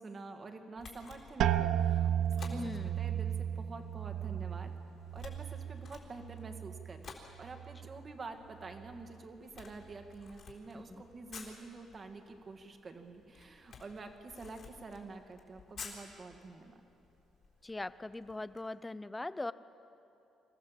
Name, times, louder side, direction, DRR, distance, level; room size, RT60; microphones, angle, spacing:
voice 1, 0.0-2.1 2.4-4.7 5.1-16.8, right 3 dB, 35° right, 6 dB, 1.9 m, -48 dB
Camera, 0.8-18.6, left 5 dB, 55° left, 3.9 m, -54 dB
sound 1, 1.4-7.0 7.4-8.1 8.6-9.0, right 10 dB, 75° right, 0.6 m, -34 dB
voice 2, 2.5-3.0 10.7-11.0 17.6-19.5, left 2 dB, 15° left, 15 dB, 0.6 m, -40 dB
25.5 x 15.0 x 7.5 m, 2.8 s
cardioid pair, 110°, 0 cm